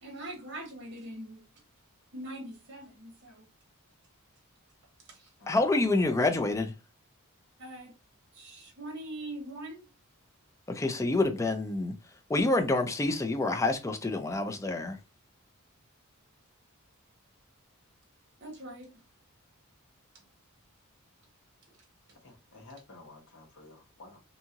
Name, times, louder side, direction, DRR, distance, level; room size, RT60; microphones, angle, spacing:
voice 1, 0.0-1.4 2.1-3.5 5.0-5.3 7.6-7.9 8.3-9.9 18.4-19.0 20.1-20.2, right 1 dB, 55° right, 1.0 m, -42 dB
voice 2, 5.5-6.7 10.7-11.9 12.3-15.0, left 2 dB, 15° left, 0.4 m, -27 dB
voice 3, 22.2-24.2, left 2 dB, 60° left, 1.1 m, -51 dB
2.7 x 2.4 x 2.8 m
head